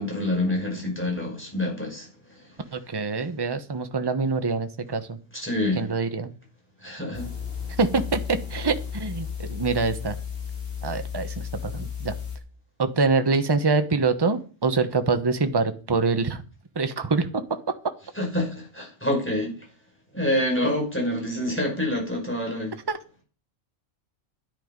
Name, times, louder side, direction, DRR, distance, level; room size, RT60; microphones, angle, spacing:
voice 1, 0.0-2.5 5.3-5.9 6.8-7.3 18.1-19.5 20.1-22.8, left 1 dB, 10° left, 5.6 m, -27 dB
voice 2, 2.7-5.2 5.8-6.3 7.8-10.2 10.8-12.1 12.8-16.4 16.7-17.6 22.9-23.0, right 4 dB, 20° right, 1.0 m, -25 dB
sound 1, 7.1-12.4, left 7 dB, 45° left, 4.0 m, -34 dB
13.0 x 10.5 x 5.3 m
omnidirectional pair, 1.3 m